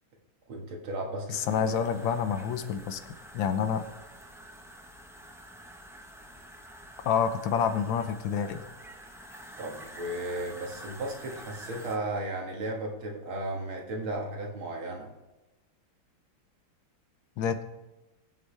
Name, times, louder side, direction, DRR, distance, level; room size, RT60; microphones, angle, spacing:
voice 1, 0.5-2.1 9.6-15.1, right 1 dB, 80° right, 0 dB, 2.7 m, -35 dB
voice 2, 1.3-3.0 3.3-3.9 7.0-8.6 17.4-17.6, left 7 dB, 70° left, 10 dB, 1.5 m, -28 dB
sound 1, 1.3-12.0, equal, 5° right, 0.4 m, -48 dB
20.5 x 7.8 x 3.4 m, 1.0 s
omnidirectional pair, 2.3 m